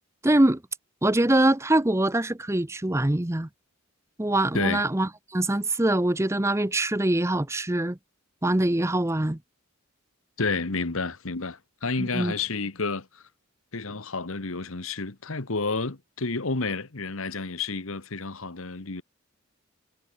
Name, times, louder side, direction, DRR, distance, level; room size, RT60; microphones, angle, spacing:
voice 1, 0.2-0.6 1.0-3.5 4.2-8.0 8.4-9.4 12.1-12.3, right 1 dB, 10° right, 0.7 m, -23 dB
voice 2, 4.5-4.8 10.4-13.2 13.7-19.0, left 3 dB, 70° left, 1.5 m, -30 dB
head